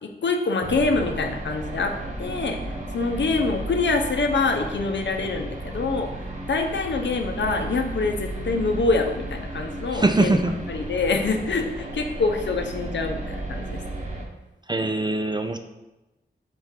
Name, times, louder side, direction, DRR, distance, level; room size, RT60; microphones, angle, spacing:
voice 1, 0.0-1.9 2.2-6.1 6.5-10.4 10.7-13.8, left 3 dB, 75° left, 4 dB, 0.7 m, -25 dB
sound 1, 0.6-14.2, right 1 dB, 40° right, 1.1 m, -34 dB
voice 2, 9.9-10.6 14.7-15.6, right 2 dB, 25° right, 7 dB, 0.4 m, -22 dB
4.9 x 3.6 x 5.6 m, 1.0 s
wide cardioid pair, 100°, 19 cm